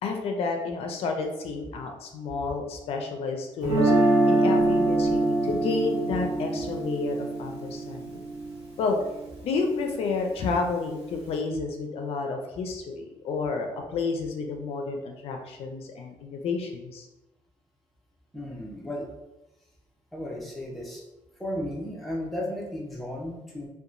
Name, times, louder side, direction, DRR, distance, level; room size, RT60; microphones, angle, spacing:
voice 1, 0.0-3.9 4.2-8.2 8.8-9.0 9.4-17.1, left 4 dB, 75° left, 3 dB, 0.4 m, -30 dB
Guitar, 3.6-9.6, right 2 dB, 75° right, 1.1 m, -25 dB
voice 2, 18.3-19.1 20.1-21.0 21.4-23.7, left 1 dB, ahead, -3 dB, 0.7 m, -34 dB
2.8 x 2.2 x 2.5 m, 0.98 s
cardioid pair, 100°, 10 cm